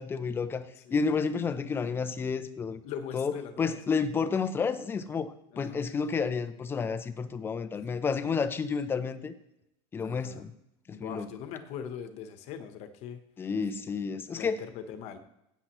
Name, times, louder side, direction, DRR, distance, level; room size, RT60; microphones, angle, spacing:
voice 1, 0.0-2.8 3.1-9.3 9.9-10.5 10.9-11.3 13.4-14.6, left 5 dB, 15° left, 10 dB, 0.6 m, -31 dB
voice 2, 2.8-3.8 5.5-5.9 10.0-10.5 10.9-13.2 14.3-15.2, left 8 dB, 45° left, 8 dB, 1.1 m, -41 dB
16.0 x 9.1 x 3.1 m, 0.84 s
cardioid pair, 160°, 15 cm